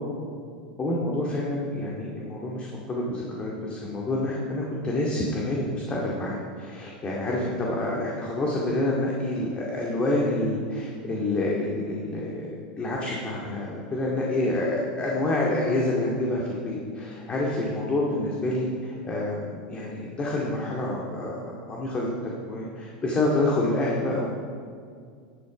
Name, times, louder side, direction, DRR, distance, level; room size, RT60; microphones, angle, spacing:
voice 1, 0.8-12.5 12.8-24.3, left 2 dB, 25° left, -3 dB, 2.2 m, -28 dB
11.0 x 11.0 x 5.2 m, 2.2 s
hypercardioid pair, 115°, 4 cm